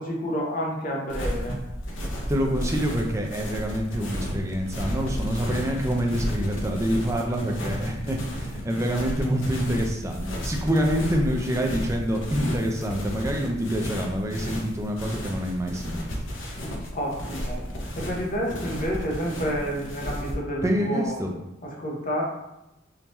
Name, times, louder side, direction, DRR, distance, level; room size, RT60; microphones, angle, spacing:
voice 1, 0.0-1.6 16.9-17.6 17.9-21.2 21.8-22.2, equal, 45° left, -2 dB, 0.8 m, -29 dB
sound 1, 1.1-20.3, equal, 85° left, 0.7 m, -33 dB
voice 2, 2.3-16.2 20.6-21.3, equal, 15° right, 1 dB, 0.5 m, -26 dB
3.6 x 2.8 x 3.0 m, 0.91 s
head